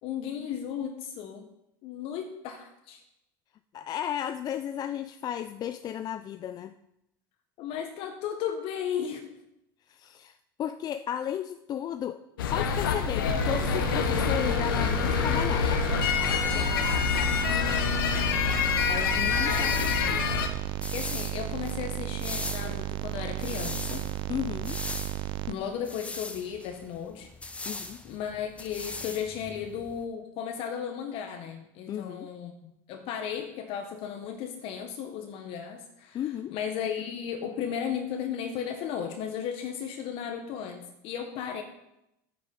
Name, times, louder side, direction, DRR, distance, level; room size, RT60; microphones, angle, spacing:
voice 1, 0.0-1.5 1.8-3.0 7.6-9.3 16.5-16.8 19.4-19.8 20.9-24.0 25.5-27.7 28.0-32.5 32.9-41.6, left 8 dB, 55° left, 6 dB, 1.4 m, -35 dB
voice 2, 3.7-6.7 9.9-12.2 12.5-15.8 18.9-20.2 24.3-24.8 27.7-28.0 31.9-32.3 36.1-36.5, left 10 dB, 35° left, 11 dB, 0.5 m, -34 dB
sound 1, 12.4-20.5, left 7 dB, 90° left, 1.2 m, -26 dB
sound 2, 13.2-25.5, right 20 dB, 45° right, 0.4 m, -34 dB
sound 3, 19.1-30.0, left 2 dB, 10° left, 1.0 m, -41 dB
9.6 x 8.6 x 5.4 m, 0.85 s
supercardioid pair, 105°, 11 cm